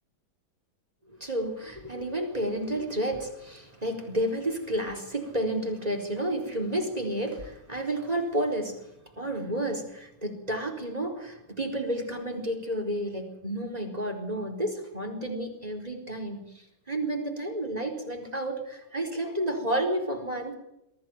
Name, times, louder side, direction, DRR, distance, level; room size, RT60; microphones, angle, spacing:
voice 1, 1.1-8.9 9.2-20.5, right 1 dB, 20° right, 3 dB, 4.5 m, -31 dB
22.5 x 15.5 x 9.1 m, 0.87 s
omnidirectional pair, 2.1 m